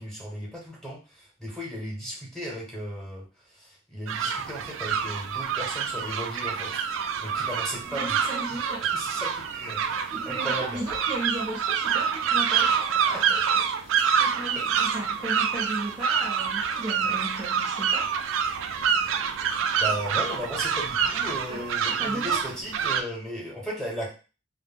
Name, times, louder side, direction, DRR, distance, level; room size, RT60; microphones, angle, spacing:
voice 1, 0.0-6.8 7.2-8.6 8.9-10.8 14.6-14.9 19.8-24.1, equal, 5° left, -5 dB, 0.9 m, -36 dB
sound 1, 4.1-23.0, right 7 dB, 75° right, 0.3 m, -27 dB
voice 2, 7.9-8.8 10.1-13.9 14.2-18.1 21.5-22.4, right 1 dB, 25° right, -3 dB, 0.6 m, -36 dB
2.1 x 2.0 x 3.4 m, 0.34 s
head